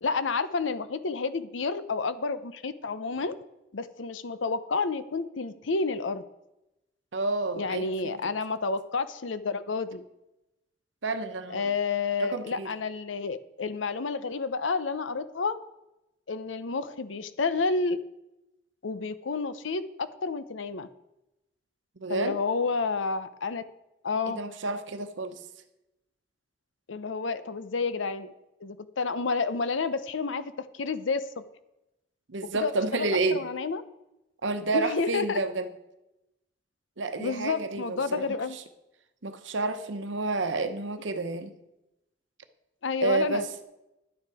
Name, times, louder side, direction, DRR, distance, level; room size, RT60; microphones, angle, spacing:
voice 1, 0.0-3.3 3.7-6.2 7.5-10.0 11.5-15.6 16.3-18.0 18.8-20.9 22.1-23.6 24.0-24.4 26.9-28.3 28.6-31.4 32.5-33.8 34.7-35.4 37.2-38.6 42.8-43.4, left 4 dB, 90° left, 13 dB, 0.7 m, -30 dB
voice 2, 7.1-8.2 11.0-11.7 12.2-12.7 22.0-22.4 24.3-25.4 32.3-33.4 34.4-35.7 37.0-38.2 38.5-38.6 39.2-41.5 43.0-43.5, right 3 dB, 80° right, 9 dB, 0.9 m, -30 dB
11.0 x 9.5 x 4.8 m, 0.93 s
head